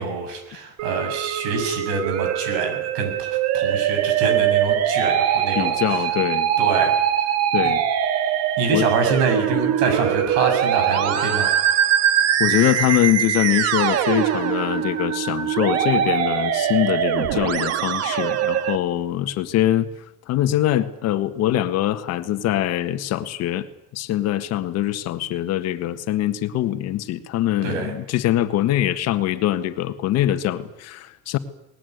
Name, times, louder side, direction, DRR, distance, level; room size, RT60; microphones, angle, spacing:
voice 1, 0.0-6.0 6.6-7.3 8.6-11.5 27.6-27.9, right 4 dB, 85° right, 7.2 m, -25 dB
Musical instrument, 0.8-18.8, right 10 dB, 50° right, 1.6 m, -22 dB
voice 2, 5.5-6.5 7.5-7.8 8.7-8.9 11.1-11.4 12.4-19.9 20.3-23.7 23.9-31.4, left 13 dB, 50° left, 1.7 m, -23 dB
20.0 x 20.0 x 9.5 m
cardioid pair, 145°, 32 cm